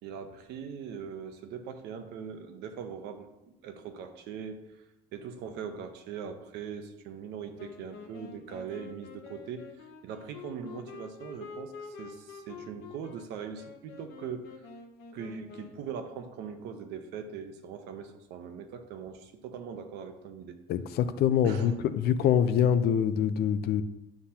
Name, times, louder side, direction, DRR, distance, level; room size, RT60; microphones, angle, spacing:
voice 1, 0.0-4.6 5.1-9.7 10.0-14.5 15.1-20.6 21.4-21.8, right 7 dB, 85° right, 7 dB, 0.9 m, -41 dB
Wind instrument woodwind instrument, 7.6-16.0, left 5 dB, 90° left, 1.0 m, -47 dB
voice 2, 20.7-23.8, left 8 dB, 70° left, 12 dB, 0.6 m, -25 dB
9.8 x 5.9 x 2.9 m, 0.95 s
cardioid pair, 110°, 17 cm